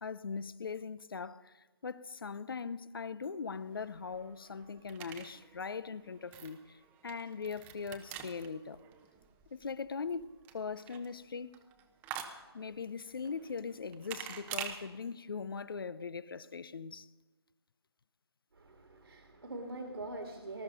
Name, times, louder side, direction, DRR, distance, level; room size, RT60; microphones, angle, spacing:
voice 1, 0.0-8.8 9.5-11.5 12.5-17.1, left 5 dB, 55° left, 0.7 m, -40 dB
sound 1, 3.5-14.8, right 9 dB, 10° right, 0.9 m, -48 dB
voice 2, 18.5-20.6, right 2 dB, 65° right, 2.1 m, -43 dB
19.5 x 13.0 x 5.3 m
figure-of-eight pair, 145°, 14 cm